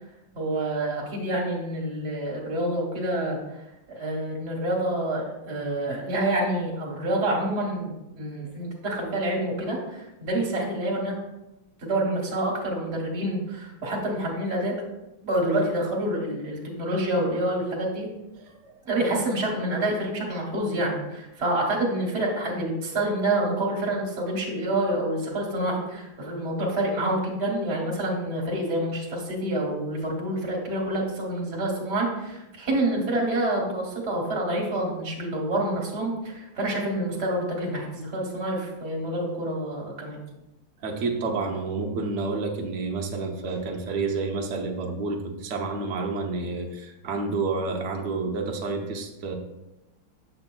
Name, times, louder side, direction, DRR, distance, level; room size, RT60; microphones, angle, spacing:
voice 1, 0.3-3.4 3.9-11.1 11.8-14.7 15.2-18.1 18.8-40.3, right 1 dB, 35° right, -2 dB, 1.3 m, -27 dB
voice 2, 18.4-18.8 40.8-49.3, right 3 dB, 60° right, 1 dB, 0.7 m, -29 dB
7.7 x 6.8 x 2.2 m, 0.95 s
omnidirectional pair, 2.3 m